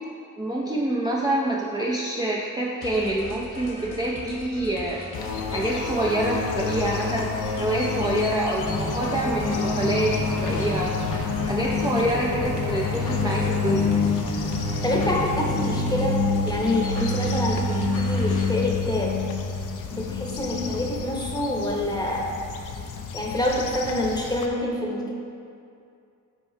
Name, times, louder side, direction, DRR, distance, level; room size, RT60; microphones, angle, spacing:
voice 1, 0.4-5.0 5.5-11.0 11.4-14.0, right 1 dB, 15° right, -4 dB, 0.5 m, -26 dB
sound 1, 2.8-18.4, left 1 dB, 50° left, 1.1 m, -39 dB
sound 2, 5.1-24.5, left 4 dB, 70° left, 0.6 m, -28 dB
sound 3, 8.6-16.1, right 2 dB, 30° right, 1.2 m, -33 dB
voice 2, 14.8-19.2 19.9-22.3 23.1-25.1, left 1 dB, 10° left, -2 dB, 0.9 m, -26 dB
8.9 x 4.4 x 2.7 m, 2.5 s
wide cardioid pair, 110°, 32 cm